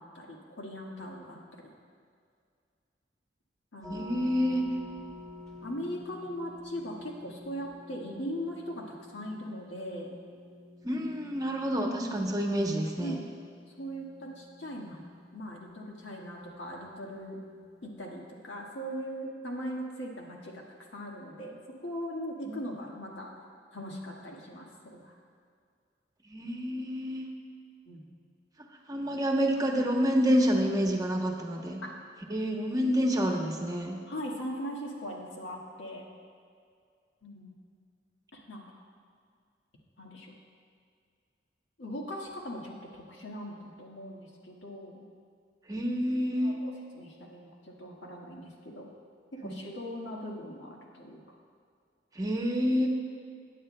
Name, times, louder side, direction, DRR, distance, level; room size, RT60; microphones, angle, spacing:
voice 1, 0.0-1.7 3.7-4.1 5.6-10.2 13.0-13.3 13.8-15.0 15.3-17.4 17.8-20.6 20.9-23.3 23.7-25.1 27.8-28.1 31.8-31.9 34.1-36.1 37.2-37.5 38.3-38.8 40.0-40.4 41.8-45.0 46.4-48.9 49.3-51.4, equal, 90° left, -1 dB, 1.5 m, -40 dB
sound 1, 3.8-17.9, left 2 dB, 5° left, 1.7 m, -50 dB
voice 2, 3.9-4.7 10.8-13.1 22.5-22.6 26.3-27.3 28.9-31.8 32.3-34.0 45.7-46.6 49.4-49.6 52.2-52.9, equal, 20° right, 1 dB, 0.8 m, -28 dB
17.5 x 9.2 x 2.2 m, 2.2 s
head